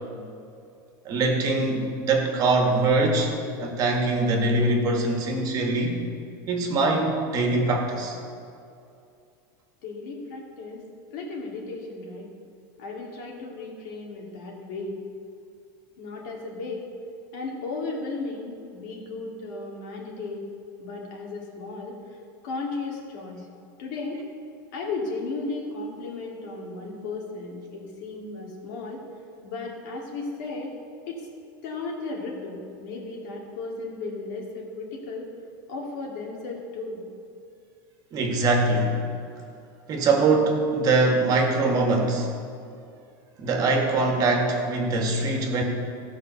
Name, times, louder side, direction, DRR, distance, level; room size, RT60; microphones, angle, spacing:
voice 1, 1.1-3.3 3.6-6.0 6.5-8.2 38.1-39.0 39.9-42.3 43.4-45.6, right 2 dB, 35° right, 1 dB, 1.9 m, -23 dB
voice 2, 9.8-10.8 11.1-12.3 12.8-14.9 16.0-16.9 17.3-20.4 20.8-22.2 22.4-23.5 23.8-24.2 24.7-29.0 29.4-30.7 31.1-31.3 31.6-35.3 35.7-37.0, left 3 dB, 60° left, -2 dB, 2.7 m, -35 dB
15.0 x 5.8 x 6.9 m, 2.5 s
supercardioid pair, 145°, 11 cm